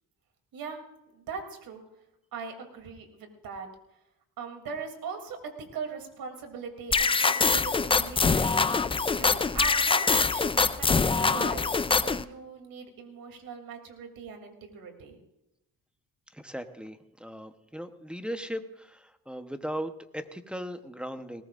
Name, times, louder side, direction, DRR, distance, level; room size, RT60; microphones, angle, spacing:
voice 1, 1.1-1.8 2.3-3.7 4.4-15.2, right 5 dB, 80° right, 4 dB, 3.1 m, -40 dB
sound 1, 6.9-12.2, left 4 dB, 15° left, 0.4 m, -24 dB
voice 2, 16.3-21.4, equal, 5° right, 8 dB, 1.0 m, -38 dB
20.0 x 18.5 x 2.6 m, 0.88 s
cardioid pair, 105°, 34 cm